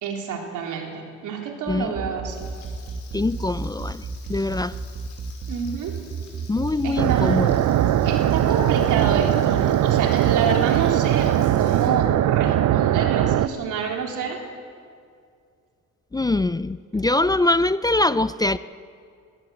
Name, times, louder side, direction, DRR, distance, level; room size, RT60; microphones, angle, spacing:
voice 1, 0.0-2.5 5.5-6.0 6.8-7.4 8.0-14.4, right 6 dB, 85° right, 1 dB, 3.4 m, -28 dB
sound 1, 1.9-9.2, right 5 dB, 45° right, 1.7 m, -32 dB
Frying (food), 2.3-11.9, left 5 dB, 70° left, 5.5 m, -49 dB
voice 2, 3.1-4.0 4.3-4.7 6.5-7.6 16.1-18.6, left 2 dB, 15° left, 15 dB, 0.4 m, -23 dB
sound 2, 7.0-13.5, right 12 dB, 70° right, 0.7 m, -20 dB
21.0 x 17.0 x 7.8 m, 2.3 s
cardioid pair, 90°, 30 cm